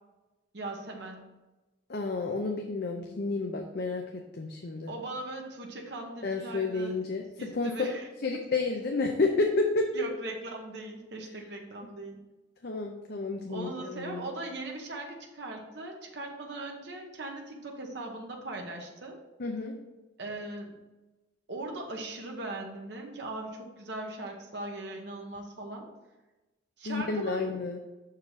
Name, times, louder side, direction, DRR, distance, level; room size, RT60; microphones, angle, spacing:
voice 1, 0.5-1.3 4.9-7.0 7.4-8.1 9.9-12.1 13.5-19.2 20.2-20.7 21.5-25.9 26.8-27.5, right 2 dB, 65° right, 1 dB, 1.1 m, -39 dB
voice 2, 1.9-4.9 6.2-7.2 7.5-7.7 8.2-9.9 12.6-14.3 19.4-19.7 26.8-27.8, left 3 dB, 55° left, 2 dB, 0.6 m, -30 dB
6.2 x 4.7 x 4.8 m, 1.1 s
head